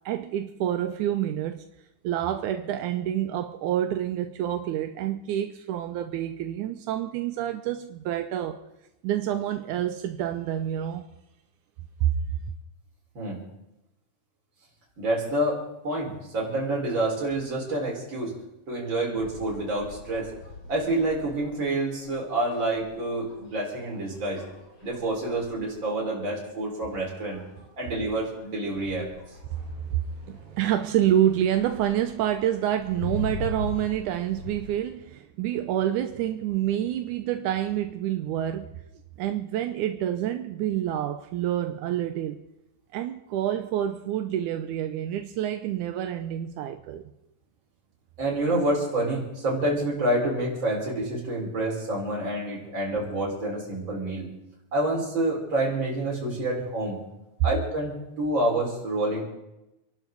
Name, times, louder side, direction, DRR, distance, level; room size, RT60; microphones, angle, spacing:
voice 1, 0.1-1.7 2.0-8.6 9.0-11.0 12.0-12.1 30.2-38.7 39.2-42.4 42.9-47.1, right 11 dB, 75° right, 1.9 m, -28 dB
voice 2, 15.0-18.3 18.7-20.3 20.7-24.4 24.8-27.4 27.8-29.1 48.2-54.3 54.7-57.0 57.4-59.2, right 1 dB, 30° right, 5.3 m, -28 dB
sound 1, 19.2-34.6, left 2 dB, 40° left, 5.9 m, -42 dB
28.5 x 12.0 x 4.0 m
omnidirectional pair, 4.3 m